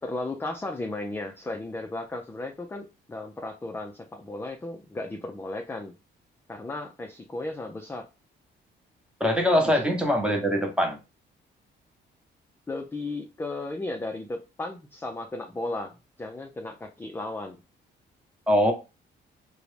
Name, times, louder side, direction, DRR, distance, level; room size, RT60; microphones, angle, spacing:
voice 1, 0.0-5.9 6.5-8.0 9.6-9.8 12.7-17.6, left 2 dB, 10° left, 3 dB, 0.3 m, -35 dB
voice 2, 9.2-11.0 18.5-18.7, equal, 5° right, 2 dB, 0.8 m, -22 dB
2.5 x 2.1 x 3.1 m, 0.28 s
cardioid pair, 90°, 20 cm